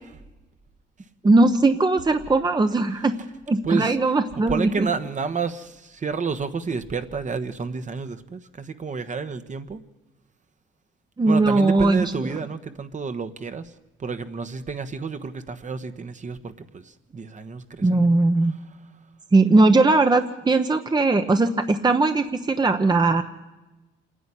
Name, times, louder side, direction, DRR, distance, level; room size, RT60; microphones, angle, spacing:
voice 1, 1.2-3.2 3.5-4.9 11.2-12.0 17.8-18.5 19.3-23.2, right 2 dB, 20° right, 7 dB, 1.0 m, -19 dB
voice 2, 3.6-4.0 4.5-9.8 11.3-13.7 14.0-18.2, right 5 dB, 40° right, 9 dB, 1.3 m, -30 dB
27.0 x 10.5 x 9.9 m, 1.1 s
cardioid pair, 90°, 20 cm